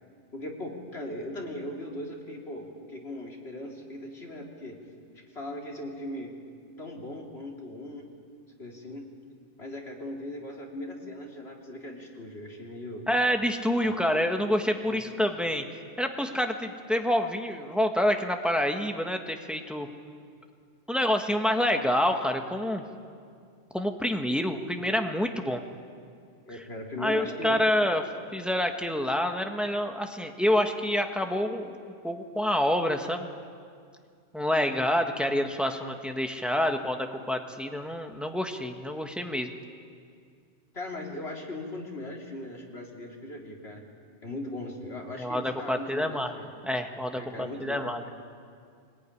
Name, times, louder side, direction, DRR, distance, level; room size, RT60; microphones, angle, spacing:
voice 1, 0.3-4.8 5.3-6.3 6.8-8.1 8.6-9.1 9.6-13.1 13.8-14.0 14.8-15.0 26.5-27.6 37.6-37.7 40.7-43.8 44.2-46.5 47.1-47.9, left 1 dB, 65° left, -1 dB, 3.6 m, -39 dB
voice 2, 13.1-15.6 16.0-19.9 20.9-22.8 23.7-25.6 27.0-28.0 28.3-31.8 32.0-33.3 34.3-39.5 45.2-46.3 46.6-48.0, left 1 dB, ahead, 4 dB, 1.5 m, -27 dB
22.5 x 20.0 x 9.9 m, 2.2 s
omnidirectional pair, 1.2 m